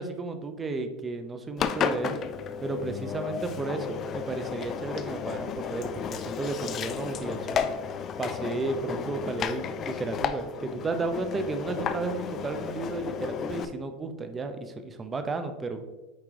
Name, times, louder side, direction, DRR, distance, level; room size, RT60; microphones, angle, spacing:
voice 1, 0.0-2.2 2.6-7.7 8.2-15.8, right 3 dB, 20° right, 8 dB, 0.7 m, -33 dB
Engine, 1.6-13.7, left 7 dB, 35° left, 0.4 m, -33 dB
8.8 x 3.1 x 3.6 m, 1.1 s
supercardioid pair, 120°, 0 cm